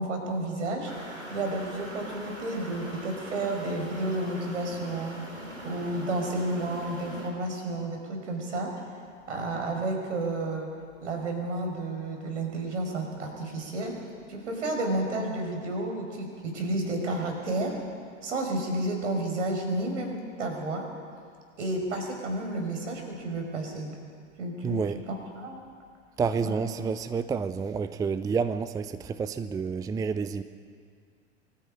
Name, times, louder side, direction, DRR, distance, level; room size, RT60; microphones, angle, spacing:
voice 1, 0.0-5.2 5.6-8.8 9.3-10.7 11.0-17.8 18.2-20.8 21.6-23.9 24.4-24.8 25.1-25.6 26.4-26.7, right 2 dB, 70° right, 5.5 m, -31 dB
sound 1, 0.9-7.3, equal, 90° right, 5.2 m, -42 dB
voice 2, 24.6-25.0 26.2-30.4, right 5 dB, 10° right, 0.5 m, -29 dB
24.0 x 14.0 x 9.0 m
figure-of-eight pair, 95°, 37 cm